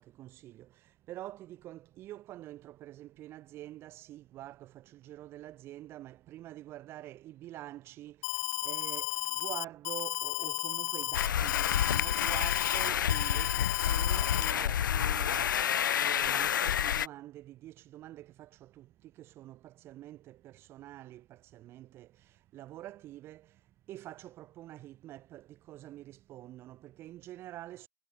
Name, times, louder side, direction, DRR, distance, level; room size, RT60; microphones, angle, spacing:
voice 1, 0.0-27.9, right 14 dB, 25° right, 1.4 m, -47 dB
Alarm, 8.2-14.5, left 40 dB or more, 35° left, 0.6 m, -34 dB
sound 1, 11.1-17.1, left 9 dB, 90° left, 0.7 m, -29 dB
hypercardioid pair, 155°, 10 cm